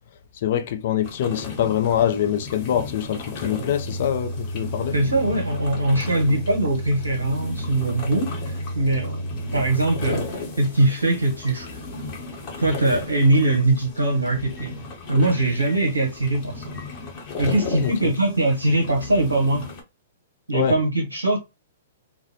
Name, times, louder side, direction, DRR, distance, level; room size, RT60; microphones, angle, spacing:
voice 1, 0.4-5.0 17.8-18.1 20.5-20.8, left 9 dB, 55° left, 0.4 m, -24 dB
sound 1, 1.0-19.8, left 3 dB, 40° left, 0.9 m, -36 dB
Microwave oven, 1.6-14.1 14.6-14.7 15.6-15.8 16.7-16.9 17.8-18.0, right 1 dB, 15° right, 1.2 m, -35 dB
voice 2, 4.9-9.3 9.5-11.8 12.6-14.8 15.1-16.8 17.4-19.7 20.5-21.4, right 2 dB, 85° right, 0.7 m, -22 dB
2.5 x 2.0 x 2.7 m
hypercardioid pair, 115°, 0 cm